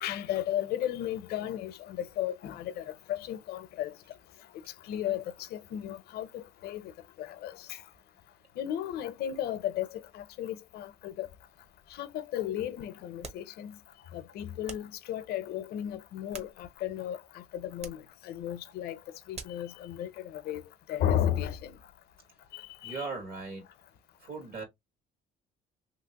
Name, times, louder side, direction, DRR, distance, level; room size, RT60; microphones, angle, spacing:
voice 1, 0.0-2.8 3.1-3.9 4.9-5.2 5.5-6.8 7.2-7.5 8.6-9.9 10.1-11.3 12.0-13.7 14.1-17.2 17.5-18.0 18.3-19.0 19.3-20.6 20.9-21.7 22.5-23.0, left 11 dB, 70° left, 0.5 m, -34 dB
sound 1, 13.2-13.5 14.7-15.0 16.0-16.9 17.8-18.1 19.3-19.7, right 4 dB, 40° right, 0.9 m, -46 dB
voice 2, 22.8-23.6 24.2-24.6, right 4 dB, 60° right, 1.4 m, -38 dB
3.0 x 2.8 x 2.8 m
cardioid pair, 110°, 17 cm